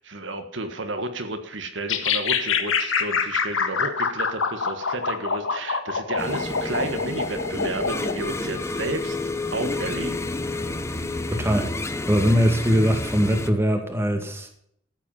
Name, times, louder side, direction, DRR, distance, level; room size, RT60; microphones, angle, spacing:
voice 1, 0.0-10.2, right 2 dB, 65° right, 7 dB, 1.6 m, -32 dB
sound 1, 1.9-8.2, left 5 dB, 90° left, 1.7 m, -25 dB
sound 2, 6.2-13.5, left 2 dB, 15° left, 0.8 m, -30 dB
voice 2, 11.3-14.5, equal, 15° right, 4 dB, 2.0 m, -22 dB
14.0 x 8.4 x 5.5 m, 0.68 s
head